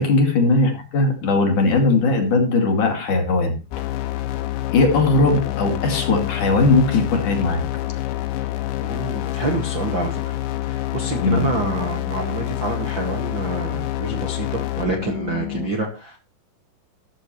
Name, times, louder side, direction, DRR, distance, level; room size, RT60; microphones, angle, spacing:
voice 1, 0.0-3.5 4.7-7.6 11.2-11.5, left 3 dB, 45° left, 3 dB, 3.4 m, -18 dB
sound 1, 3.7-15.7, left 15 dB, 80° left, 3.2 m, -27 dB
voice 2, 8.8-16.3, right 3 dB, 60° right, 3 dB, 1.2 m, -28 dB
13.5 x 13.0 x 3.2 m, 0.30 s
omnidirectional pair, 5.6 m